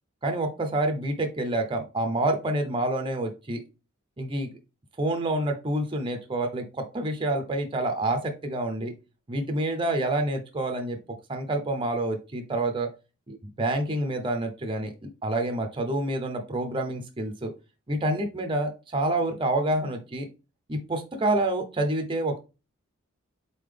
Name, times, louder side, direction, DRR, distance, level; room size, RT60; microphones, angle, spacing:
voice 1, 0.2-3.6 4.2-4.5 5.0-8.9 9.3-11.0 11.3-12.9 13.3-14.9 15.2-17.5 17.9-20.3 20.7-22.4, right 1 dB, 25° right, 4 dB, 0.6 m, -28 dB
4.1 x 3.7 x 3.3 m, 0.30 s
head